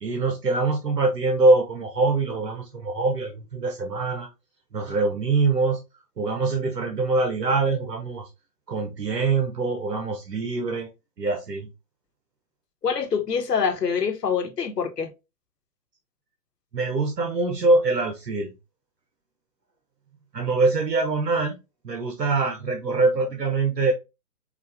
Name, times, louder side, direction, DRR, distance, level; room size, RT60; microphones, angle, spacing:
voice 1, 0.0-4.3 4.7-5.8 6.2-8.3 8.7-10.9 11.2-11.7 16.7-18.5 20.3-21.6 21.8-23.9, right 3 dB, 80° right, 1.0 m, -23 dB
voice 2, 12.8-15.1, left 6 dB, 75° left, 1.1 m, -25 dB
4.9 x 2.5 x 3.5 m
figure-of-eight pair, 120°, 48 cm